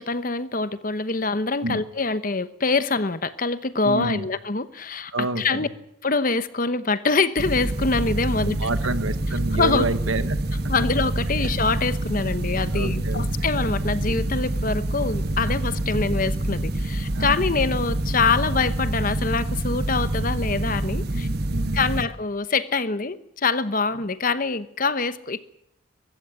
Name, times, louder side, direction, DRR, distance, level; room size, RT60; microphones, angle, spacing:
voice 1, 0.0-5.7 6.0-8.7 9.5-9.9 10.7-21.3 21.7-25.4, left 4 dB, 40° left, 14 dB, 1.0 m, -25 dB
voice 2, 3.8-4.3 5.1-5.7 8.4-10.4 10.6-10.7 12.7-13.3 15.5-15.6 17.1-17.5 21.1-22.0, right 2 dB, 75° right, 11 dB, 1.6 m, -29 dB
sound 1, 7.4-22.0, right 1 dB, 50° right, 1.5 m, -26 dB
23.0 x 14.5 x 9.6 m, 0.80 s
head